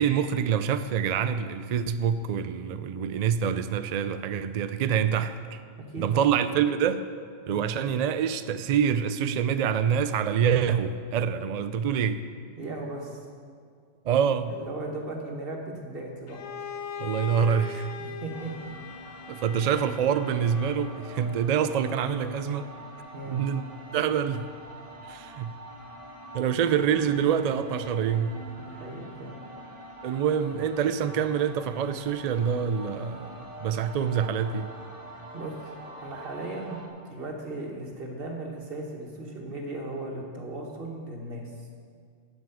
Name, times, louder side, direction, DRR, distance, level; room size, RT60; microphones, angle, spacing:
voice 1, 0.0-5.6 6.0-7.0 7.5-12.3 14.0-14.6 17.0-17.9 19.3-22.7 23.3-23.6 23.9-24.5 25.1-25.6 26.3-28.4 30.0-34.7, right 8 dB, 70° right, 11 dB, 0.4 m, -26 dB
voice 2, 5.8-6.3 12.6-13.2 14.4-16.5 18.0-18.5 23.1-23.5 28.6-29.4 35.3-41.5, right 2 dB, 50° right, 0 dB, 1.7 m, -37 dB
Bowed string instrument, 16.3-21.1, left 6 dB, 75° left, 0.9 m, -40 dB
sound 1, 18.3-36.9, right 1 dB, 30° right, 1.6 m, -45 dB
9.4 x 7.2 x 8.3 m, 2.1 s
omnidirectional pair, 1.2 m